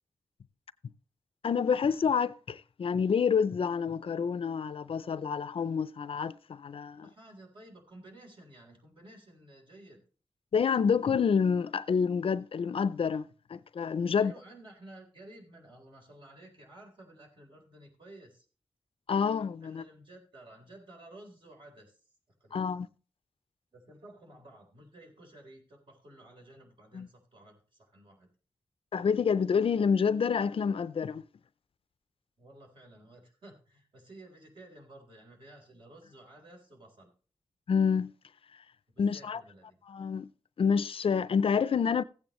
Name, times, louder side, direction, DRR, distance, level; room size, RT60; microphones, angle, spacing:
voice 1, 1.4-7.1 10.5-14.3 19.1-19.8 22.5-22.9 26.9-27.1 28.9-31.2 37.7-38.1 39.0-39.4 39.9-40.3 40.6-42.0, left 6 dB, 70° left, 0.4 m, -28 dB
voice 2, 6.9-10.0 14.1-18.5 19.6-22.7 23.7-28.3 32.4-37.1 38.9-39.8, right 1 dB, 60° right, 3.8 m, -53 dB
15.5 x 8.8 x 3.1 m
wide cardioid pair, 105°, 10 cm